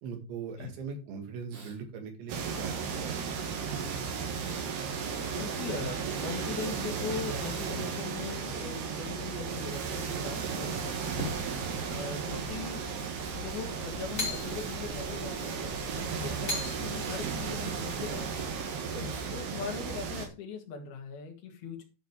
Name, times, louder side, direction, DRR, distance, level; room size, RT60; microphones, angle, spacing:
voice 1, 0.0-3.1 3.5-3.6 11.5-11.8 16.1-16.4 18.8-19.1, right 4 dB, 85° right, 4 dB, 4.5 m, -40 dB
Breathing, 1.5-1.8 2.9-3.5 4.2-6.4 7.1-8.8 9.7-12.0 12.3-12.4 13.0-13.6 14.1-14.8 15.2-15.7 16.1-18.3 19.1-19.3, right 4 dB, 50° right, 3.7 m, -54 dB
sound 1, 2.3-20.3, right 6 dB, 65° right, 3.6 m, -35 dB
voice 2, 5.4-11.1 11.8-12.9 13.3-18.5 19.3-21.8, left 6 dB, 65° left, 1 dB, 3.8 m, -40 dB
sound 2, 11.0-18.7, left 2 dB, 15° left, 3.5 m, -42 dB
11.5 x 5.4 x 4.8 m, 0.32 s
omnidirectional pair, 5.1 m